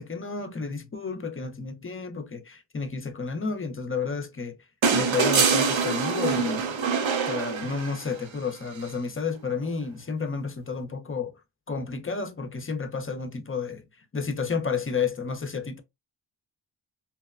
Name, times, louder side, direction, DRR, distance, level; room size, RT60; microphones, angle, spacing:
voice 1, 0.0-4.6 4.9-6.6 7.3-11.3 11.7-13.8 14.1-15.8, left 5 dB, 30° left, 0.5 m, -31 dB
sound 1, 4.8-8.2 9.7-9.8, right 5 dB, 75° right, 0.7 m, -24 dB
2.9 x 2.1 x 2.3 m
cardioid pair, 50°, 47 cm